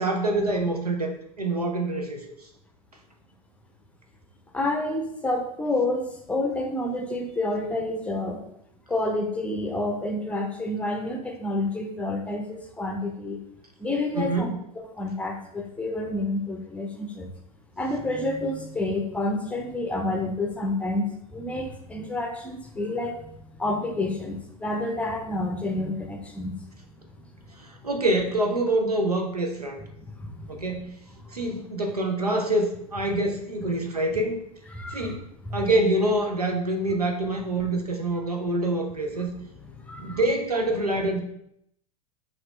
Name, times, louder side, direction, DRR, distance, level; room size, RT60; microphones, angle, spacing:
voice 1, 0.0-2.3 14.2-14.6 27.6-29.8 30.5-31.0 31.3-34.4 34.9-35.2 35.5-39.4 40.0-41.2, right 2 dB, 90° right, 3 dB, 0.6 m, -26 dB
voice 2, 4.5-8.4 8.9-13.4 13.8-14.5 15.0-17.3 17.8-26.8 30.0-30.6 31.1-31.3 33.7-33.8 34.7-35.2 35.5-35.6 39.2-39.3 39.7-40.2, left 2 dB, 5° left, 2 dB, 0.6 m, -29 dB
5.8 x 2.5 x 3.2 m, 0.74 s
figure-of-eight pair, 85°, 19 cm